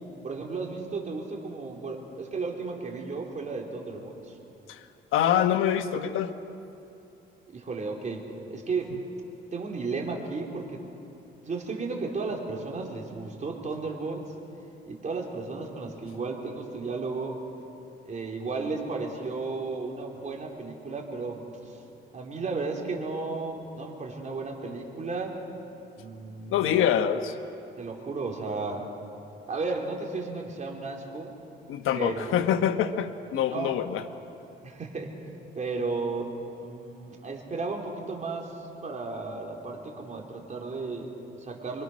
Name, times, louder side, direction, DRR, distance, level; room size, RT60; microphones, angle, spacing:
voice 1, 0.2-4.4 7.5-8.9 9.5-10.9 11.5-14.3 14.9-17.4 18.1-21.8 22.1-25.4 26.0-26.7 27.8-28.9 29.5-31.3 31.9-32.3 33.3-33.7 34.6-35.1 35.6-36.3 36.6-41.8, right 3 dB, 35° right, 0 dB, 3.9 m, -34 dB
voice 2, 5.1-6.3 26.5-27.4 31.7-34.0, left 9 dB, 85° left, 9 dB, 1.2 m, -25 dB
26.0 x 24.0 x 6.3 m, 2.7 s
cardioid pair, 100°, 20 cm